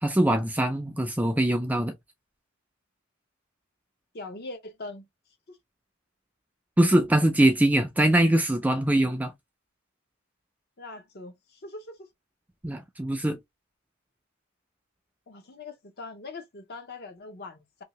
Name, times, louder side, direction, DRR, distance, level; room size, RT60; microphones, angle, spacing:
voice 1, 0.0-1.9 6.8-9.3 12.6-13.4, right 1 dB, 5° right, 0.3 m, -22 dB
voice 2, 4.1-5.1 5.5-5.6 10.8-12.0 15.3-17.8, left 3 dB, 45° left, 0.7 m, -41 dB
2.7 x 2.7 x 2.9 m
head